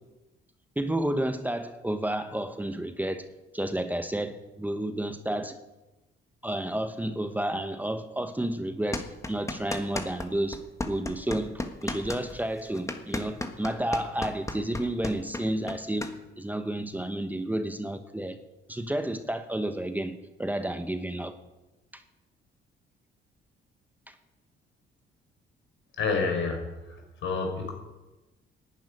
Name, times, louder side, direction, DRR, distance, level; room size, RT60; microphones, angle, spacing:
voice 1, 0.8-3.3 3.5-5.6 6.4-10.6 10.9-18.4 18.7-21.3 21.9-22.0 24.1-24.2, right 1 dB, 10° right, 8 dB, 1.0 m, -31 dB
sound 1, 8.9-10.3 10.5-16.1, left 2 dB, 15° left, 1.5 m, -34 dB
voice 2, 26.0-27.7, left 4 dB, 75° left, 2 dB, 4.8 m, -29 dB
11.5 x 8.8 x 9.9 m, 1.1 s
cardioid pair, 90°, 20 cm